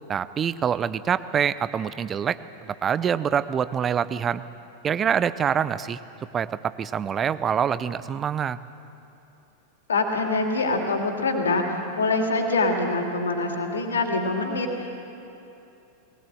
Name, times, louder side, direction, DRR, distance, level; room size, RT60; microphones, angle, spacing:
voice 1, 0.1-4.4 4.8-6.0 6.3-8.6, right 8 dB, 25° right, 15 dB, 0.7 m, -25 dB
voice 2, 9.9-15.0, left 3 dB, 70° left, 3 dB, 2.6 m, -25 dB
21.5 x 19.5 x 7.8 m, 2.8 s
figure-of-eight pair, 90°, 0 cm